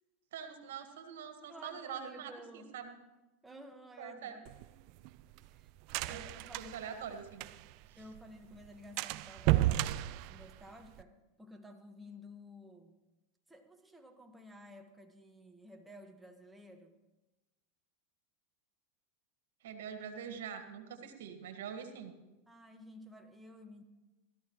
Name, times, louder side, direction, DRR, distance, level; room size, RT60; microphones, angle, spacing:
voice 1, 0.3-3.0 4.0-4.3 6.1-6.2 6.6-7.5 7.9-8.0 19.6-22.1, right 7 dB, 80° right, 6 dB, 1.8 m, -44 dB
voice 2, 1.5-2.8 3.4-4.4 5.4-5.7 6.1-6.8 8.0-9.9 10.3-13.0 13.5-17.0 22.5-23.8, left 1 dB, 5° right, 4 dB, 1.5 m, -53 dB
sound 1, 4.5-7.9 8.2-8.3 8.5-8.7 9.0-11.0, right 15 dB, 55° right, 0.4 m, -33 dB
17.0 x 14.0 x 3.2 m, 1.1 s
hypercardioid pair, 115°, 0 cm